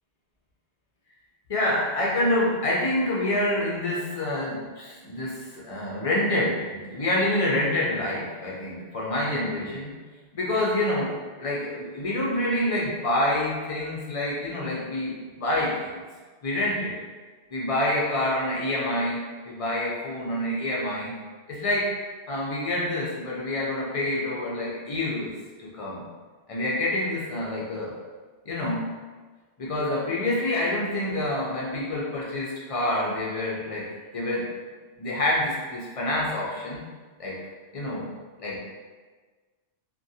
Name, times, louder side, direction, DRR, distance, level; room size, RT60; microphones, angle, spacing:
voice 1, 1.5-9.9 10.3-16.0 16.4-17.0 17.5-19.2 19.4-21.2 21.5-21.9 22.3-25.3 25.6-26.1 26.5-27.9 28.5-28.9 29.6-34.5 35.0-36.8 37.2-37.4 37.7-38.1 38.4-38.6, left 1 dB, 50° left, -5 dB, 0.4 m, -27 dB
2.5 x 2.2 x 2.6 m, 1.4 s
omnidirectional pair, 1.1 m